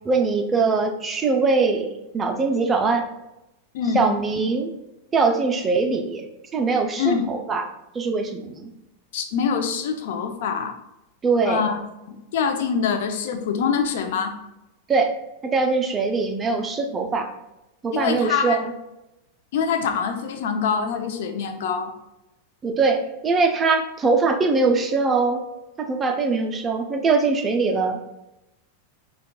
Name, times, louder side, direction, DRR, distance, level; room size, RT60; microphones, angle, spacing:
voice 1, 0.0-3.1 3.9-4.7 5.1-6.3 6.5-7.7 7.9-8.7 11.2-11.7 14.9-15.1 15.4-17.3 17.8-18.7 22.6-25.4 25.8-28.0, right 4 dB, 20° right, 4 dB, 0.5 m, -22 dB
voice 2, 3.7-4.1 7.0-7.2 9.1-10.7 11.5-11.8 12.1-14.3 17.9-18.6 19.5-21.9, left 6 dB, 70° left, 6 dB, 0.5 m, -24 dB
5.1 x 2.3 x 2.2 m, 0.92 s
supercardioid pair, 130°, 0 cm